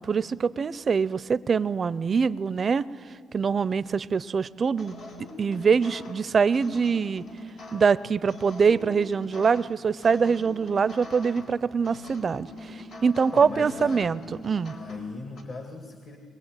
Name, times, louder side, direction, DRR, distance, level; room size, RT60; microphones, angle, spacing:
voice 1, 0.0-2.9 3.3-5.0 5.4-7.2 7.7-14.7, right 5 dB, 40° right, 18 dB, 0.5 m, -24 dB
sound 1, 4.8-15.4, left 2 dB, 80° left, 3.8 m, -43 dB
voice 2, 13.3-14.0 14.7-16.2, left 3 dB, 55° left, 5 dB, 2.2 m, -38 dB
22.0 x 21.0 x 9.0 m, 2.1 s
cardioid pair, 90°, 0 cm